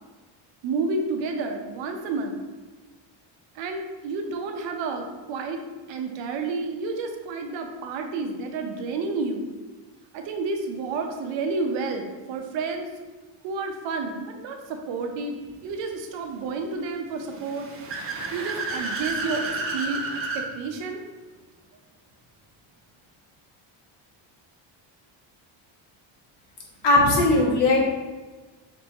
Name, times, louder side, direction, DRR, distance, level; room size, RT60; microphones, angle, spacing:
voice 1, 0.6-2.4 3.5-5.6 5.9-9.5 10.1-12.9 13.4-17.7 18.3-21.0, right 3 dB, 75° right, 4 dB, 0.8 m, -30 dB
Car / Accelerating revving vroom, 17.2-20.5, right 3 dB, 30° right, 0.5 m, -31 dB
voice 2, 26.8-27.8, left 2 dB, 60° left, -4 dB, 1.4 m, -18 dB
3.3 x 3.3 x 4.0 m, 1.3 s
cardioid pair, 150°, 45 cm